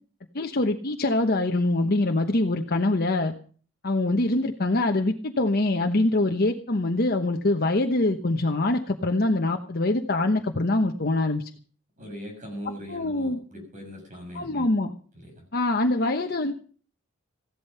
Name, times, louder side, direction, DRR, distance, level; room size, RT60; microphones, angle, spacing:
voice 1, 0.3-3.3 3.8-11.5 12.9-13.4 14.3-14.9 15.5-16.5, left 2 dB, 50° left, 4 dB, 1.1 m, -24 dB
voice 2, 12.0-14.7 15.1-15.4, equal, 40° right, 2 dB, 6.7 m, -40 dB
15.5 x 11.5 x 5.6 m, 0.42 s
head